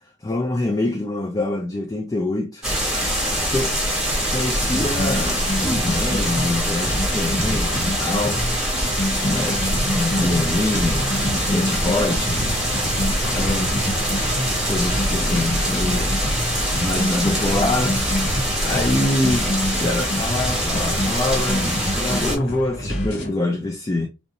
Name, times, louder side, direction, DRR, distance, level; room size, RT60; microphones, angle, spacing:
voice 1, 0.2-2.7 3.5-3.7 4.3-8.8 9.2-12.6 12.9-13.0 13.3-14.0 14.7-16.2 16.8-18.0 18.6-24.1, left 2 dB, 20° left, 0.3 m, -25 dB
sound 1, 2.6-22.4, equal, 5° right, 0.8 m, -24 dB
sound 2, 4.5-23.3, equal, 75° left, 0.9 m, -28 dB
sound 3, 10.1-16.3, right 3 dB, 80° right, 0.4 m, -35 dB
2.6 x 2.1 x 2.7 m
head